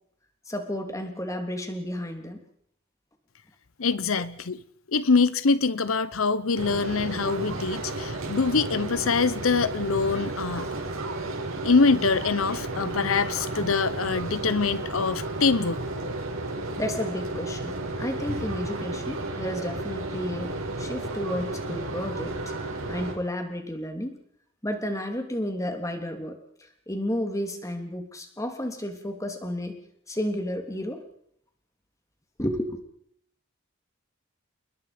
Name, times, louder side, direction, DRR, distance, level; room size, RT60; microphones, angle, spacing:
voice 1, 0.5-2.4 4.1-4.2 16.8-20.5 20.8-22.4 22.9-24.2 24.6-29.8 30.1-31.0 32.4-32.8, left 1 dB, 15° left, 3.2 m, -32 dB
voice 2, 3.8-4.6 4.9-10.7 11.6-15.8, left 4 dB, 85° left, 0.9 m, -24 dB
sound 1, 6.5-23.1, right 2 dB, 85° right, 6.0 m, -33 dB
29.0 x 21.5 x 5.2 m
head